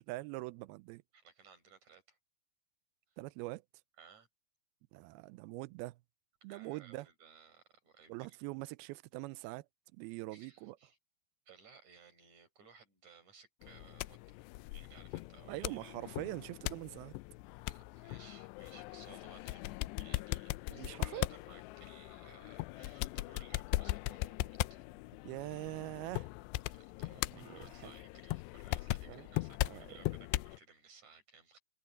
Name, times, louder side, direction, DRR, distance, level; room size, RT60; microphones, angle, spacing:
voice 1, 0.0-1.0 3.2-3.6 4.9-6.0 6.4-7.1 8.1-9.7 9.9-10.8 15.5-17.1 20.7-21.3 25.3-26.3 27.3-27.9 29.1-29.3 29.6-30.0, right 20 dB, 85° right, 2.2 m, -43 dB
voice 2, 1.1-2.2 3.1-3.2 4.0-4.3 6.4-8.4 10.3-11.0 11.5-14.4 14.7-16.0 17.7-24.8 26.7-31.6, right 5 dB, 45° right, 7.2 m, -60 dB
sound 1, 13.6-30.6, left 19 dB, 85° left, 2.7 m, -39 dB
omnidirectional pair, 4.9 m